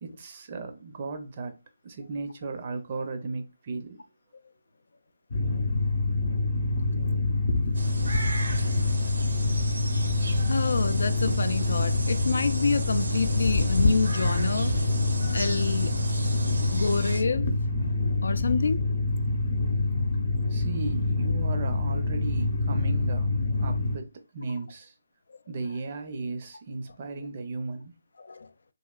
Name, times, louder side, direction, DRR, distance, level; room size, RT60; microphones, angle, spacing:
voice 1, 0.0-1.5 1.8-4.0 20.5-23.3 23.6-24.9 25.5-27.9, right 3 dB, 35° right, 0.5 m, -35 dB
sound 1, 5.3-24.0, left 2 dB, 55° left, 0.7 m, -26 dB
sound 2, 7.7-17.2, right 2 dB, 75° right, 0.7 m, -34 dB
voice 2, 10.5-14.8 15.2-15.9 16.7-17.5 17.8-17.9 18.2-18.9 28.2-28.5, left 4 dB, 70° left, 0.3 m, -27 dB
3.0 x 2.8 x 2.3 m
hypercardioid pair, 165°, 0 cm